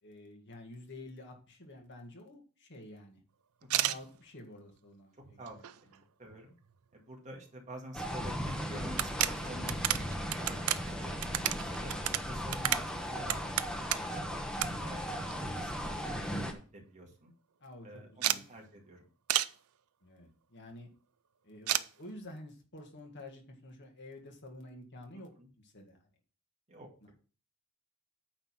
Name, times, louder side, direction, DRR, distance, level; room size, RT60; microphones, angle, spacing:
voice 1, 0.0-3.2 3.7-5.6 11.7-11.9 14.5-14.9 17.6-18.5 20.0-20.9 21.4-25.3 25.6-26.1 27.0-27.1, left 1 dB, 55° left, 2 dB, 1.9 m, -50 dB
voice 2, 3.6-3.9 5.4-5.6 6.2-6.5 6.9-9.9 10.4-10.6 10.8-13.5 13.9-14.2 14.8-17.3 17.8-19.1 25.4-25.5 26.7-27.1, right 1 dB, 35° right, 0 dB, 2.0 m, -48 dB
sound 1, 3.6-4.0 4.7-4.8 5.2-6.0 6.3-6.4 6.6-6.7 8.1-8.2 8.5-8.6 8.9-14.2 14.6-14.7 15.0-15.8 16.1-16.2 16.5-16.6 16.8-17.1 18.2-18.4 19.3-19.5 21.7-21.9, right 13 dB, 70° right, 0.5 m, -32 dB
sound 2, 7.9-16.5, equal, 5° left, 0.9 m, -37 dB
9.1 x 3.9 x 6.0 m, 0.37 s
head